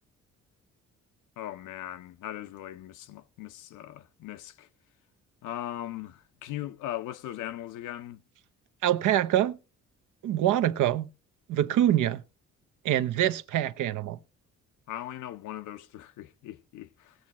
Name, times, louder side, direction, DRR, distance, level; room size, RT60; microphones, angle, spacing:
voice 1, 1.4-4.7 5.4-8.2 14.9-17.1, left 12 dB, 90° left, 0.7 m, -39 dB
voice 2, 8.8-9.6 10.2-11.1 11.5-12.2 12.8-14.2, right 12 dB, 80° right, 0.8 m, -25 dB
20.0 x 7.4 x 2.9 m
cardioid pair, 90°, 30 cm